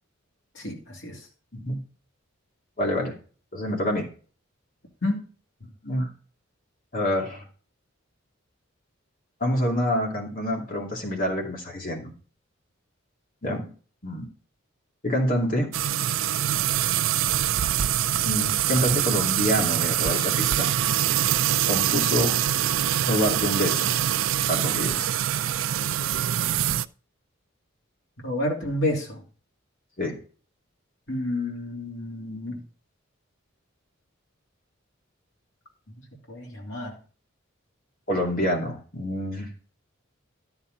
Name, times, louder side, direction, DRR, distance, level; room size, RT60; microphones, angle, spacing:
voice 1, 0.5-1.2 5.0-5.2 28.2-29.2 31.1-32.6 36.3-37.0, left 1 dB, 65° left, -1 dB, 2.9 m, -29 dB
voice 2, 1.5-1.8 2.8-3.1 3.5-4.1 5.8-6.1 6.9-7.4 9.4-12.1 13.4-13.7 14.0-14.3 15.0-15.7 18.2-20.7 21.7-22.4 23.0-23.9 24.5-25.1 30.0-30.2 38.1-39.5, equal, 45° left, 0 dB, 2.5 m, -27 dB
sound 1, 15.7-26.9, right 11 dB, 75° right, 0.4 m, -24 dB
13.0 x 7.1 x 3.9 m, 0.40 s
head